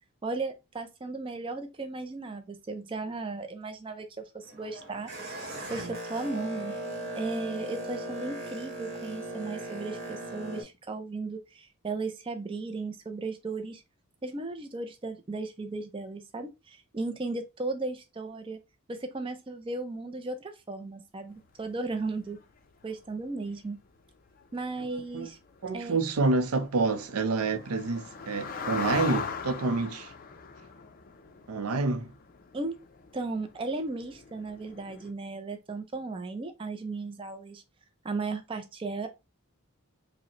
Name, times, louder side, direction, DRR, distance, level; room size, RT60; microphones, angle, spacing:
voice 1, 0.2-5.1 5.7-6.8 7.2-13.8 14.2-18.6 18.9-22.4 22.8-23.8 24.5-25.4 25.7-26.0 32.5-32.8 33.1-37.6 38.0-39.1, right 3 dB, 25° right, 0.4 m, -35 dB
Boat Water vehicle, 4.4-10.6, right 1 dB, 50° right, 1.3 m, -38 dB
sound 1, 21.4-21.5 21.9-22.0 22.2-22.4 22.8-23.1 23.5-23.6 24.0-24.1 24.3-24.4 24.7-35.1, left 5 dB, 40° left, 0.4 m, -41 dB
voice 2, 25.6-30.1 31.5-32.1, right 3 dB, 85° right, 0.5 m, -28 dB
5.0 x 2.1 x 2.9 m
head